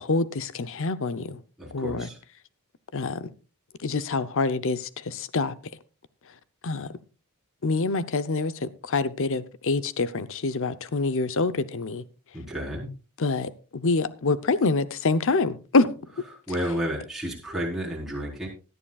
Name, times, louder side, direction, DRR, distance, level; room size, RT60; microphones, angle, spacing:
voice 1, 0.0-1.4 1.7-2.1 2.9-3.3 3.8-5.5 6.6-6.9 7.6-12.0 13.2-16.0, left 3 dB, 60° left, 0.7 m, -26 dB
voice 2, 1.6-2.2 12.3-12.9 16.5-18.5, equal, ahead, 4.3 m, -31 dB
17.5 x 11.5 x 2.4 m
head